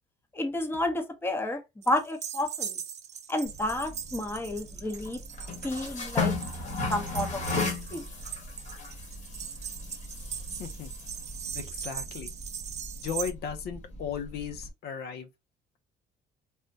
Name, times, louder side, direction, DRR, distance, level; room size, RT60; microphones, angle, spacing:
voice 1, 0.3-1.6 1.9-2.8 3.3-5.2 5.6-6.3 6.9-8.1, left 1 dB, 15° left, 0.7 m, -31 dB
sound 1, 1.8-13.3, right 8 dB, 45° right, 0.5 m, -40 dB
sound 2, 3.5-14.7, left 3 dB, 45° left, 1.2 m, -36 dB
voice 2, 10.4-10.9 11.5-12.3 13.0-15.3, left 7 dB, 70° left, 0.6 m, -36 dB
3.4 x 2.1 x 2.6 m
cardioid pair, 110°, 17 cm